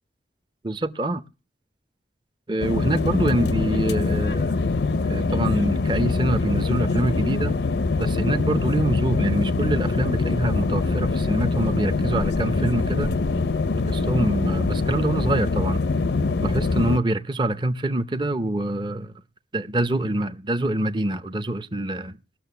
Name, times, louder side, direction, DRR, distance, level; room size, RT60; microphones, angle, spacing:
voice 1, 0.6-1.2 2.5-4.6 5.0-7.6 8.0-13.2 13.9-15.8 16.4-19.1 19.5-22.2, right 1 dB, 25° right, 0.6 m, -25 dB
sound 1, 2.6-17.0, left 3 dB, 70° left, 0.6 m, -24 dB
18.5 x 6.6 x 6.8 m
head